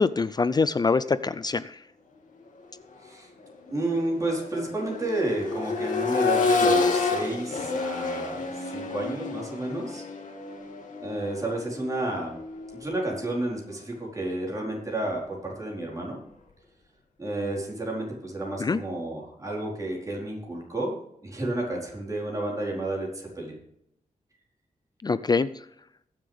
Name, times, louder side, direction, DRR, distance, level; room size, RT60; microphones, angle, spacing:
voice 1, 0.0-1.8 18.6-18.8 25.0-25.6, left 4 dB, 30° left, 15 dB, 0.4 m, -24 dB
Accelerating revving vroom, 2.8-3.0 3.4-13.3 15.0-15.1, left 4 dB, 85° left, 2.4 m, -29 dB
voice 2, 3.7-10.0 11.0-12.4 12.8-16.2 17.2-20.9 21.2-23.6, right 2 dB, 25° right, -2 dB, 4.4 m, -31 dB
21.5 x 7.3 x 3.5 m, 0.77 s
wide cardioid pair, 125°, 13 cm